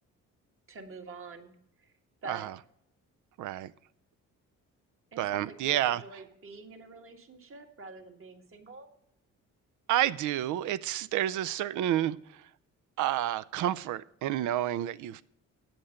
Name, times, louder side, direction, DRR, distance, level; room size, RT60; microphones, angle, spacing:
voice 1, 0.7-1.5 1.8-1.9 2.2-2.5 5.1-8.9, right 3 dB, 45° right, 1.7 m, -46 dB
voice 2, 2.3-2.6 3.4-3.7 5.2-6.0 9.9-12.5 13.0-15.2, right 12 dB, 80° right, 0.5 m, -30 dB
8.7 x 7.8 x 6.4 m
cardioid pair, 90°, 30 cm